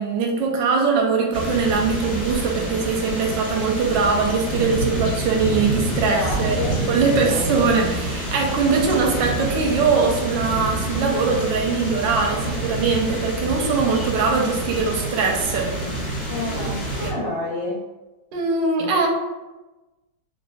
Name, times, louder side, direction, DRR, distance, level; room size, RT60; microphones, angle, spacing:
voice 1, 0.0-6.6 6.9-15.7 18.3-19.1, right 4 dB, 90° right, 0 dB, 1.3 m, -21 dB
sound 1, 1.3-17.1, right 1 dB, 45° left, 1.0 m, -27 dB
voice 2, 6.0-6.8 7.2-7.7 8.8-9.5 16.3-17.8, left 2 dB, 90° left, -7 dB, 1.8 m, -30 dB
3.4 x 2.6 x 2.3 m, 1.1 s
omnidirectional pair, 1.9 m